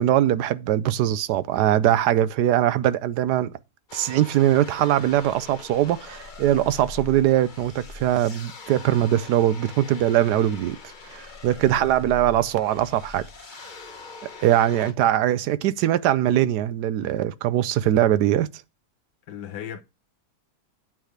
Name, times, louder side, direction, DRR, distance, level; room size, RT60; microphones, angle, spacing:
voice 1, 0.0-3.5 3.9-10.8 11.1-13.3 14.4-18.5, right 12 dB, 80° right, 1.1 m, -21 dB
sound 1, 3.9-14.9, left 3 dB, 35° left, 0.9 m, -42 dB
voice 2, 19.3-19.8, left 8 dB, 85° left, 1.5 m, -36 dB
9.0 x 3.4 x 6.4 m
omnidirectional pair, 1.8 m